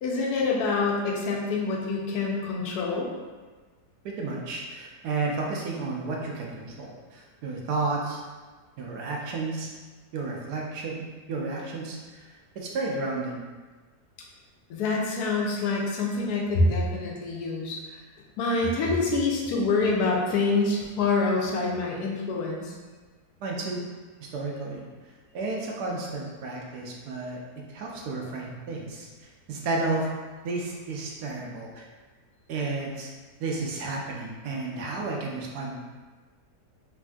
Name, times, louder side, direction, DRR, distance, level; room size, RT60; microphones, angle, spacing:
voice 1, 0.0-3.1 14.7-18.0 18.4-22.7, left 3 dB, 75° left, -2 dB, 1.1 m, -26 dB
voice 2, 4.0-8.3 8.8-9.7 10.1-13.4 23.4-23.8 24.2-27.4 27.7-30.1 30.4-31.9 32.5-33.1 33.4-35.8, right 3 dB, 75° right, -1 dB, 1.1 m, -32 dB
3.4 x 2.6 x 2.2 m, 1.4 s
omnidirectional pair, 1.7 m